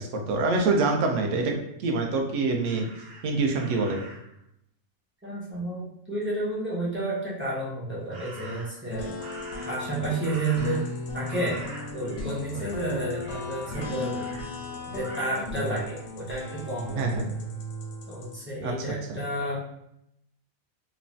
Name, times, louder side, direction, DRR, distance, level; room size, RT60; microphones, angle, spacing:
voice 1, 0.0-2.9 3.2-4.0 17.0-17.3 18.6-18.7, right 3 dB, 70° right, 2 dB, 0.8 m, -25 dB
Crow, 2.6-4.3 8.1-8.8 9.2-11.0 11.2-12.3 12.6-12.8 13.1-14.4 15.0-15.4, right 2 dB, 85° right, 1.2 m, -44 dB
voice 2, 5.2-9.1 9.7-10.9 11.1-11.6 11.9-14.2 14.9-17.3 18.1-19.6, right 2 dB, 15° right, -8 dB, 0.4 m, -31 dB
sound 1, 8.9-18.3, left 2 dB, 85° left, 1.1 m, -36 dB
3.1 x 2.0 x 2.6 m, 0.78 s
omnidirectional pair, 1.5 m